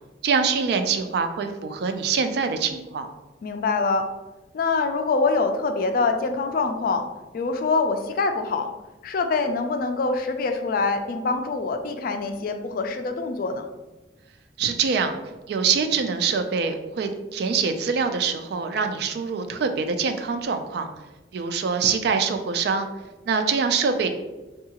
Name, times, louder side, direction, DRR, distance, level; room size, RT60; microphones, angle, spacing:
voice 1, 0.2-3.1 14.6-15.2 15.5-20.9 21.3-22.9 23.3-24.1, right 5 dB, 60° right, 7 dB, 0.3 m, -24 dB
voice 2, 3.4-4.1 4.5-7.1 7.3-8.7 9.0-13.6, left 4 dB, 50° left, 6 dB, 0.3 m, -24 dB
3.6 x 2.3 x 2.8 m, 1.1 s
head